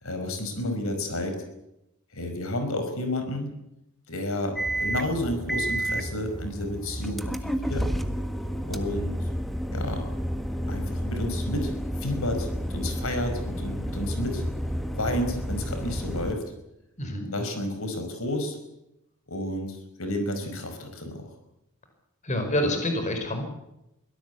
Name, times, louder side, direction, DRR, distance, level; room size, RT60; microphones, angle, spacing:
voice 1, 0.0-1.4 2.1-3.5 4.1-7.9 8.6-9.2 9.7-10.0 10.7-14.4 14.9-16.4 17.2-18.6 19.3-21.3, left 1 dB, 70° left, 6 dB, 5.3 m, -31 dB
sound 1, 4.6-16.3, equal, ahead, 1.6 m, -31 dB
voice 2, 22.2-23.4, left 1 dB, 35° left, 5 dB, 5.1 m, -27 dB
24.0 x 17.5 x 8.3 m, 0.87 s
head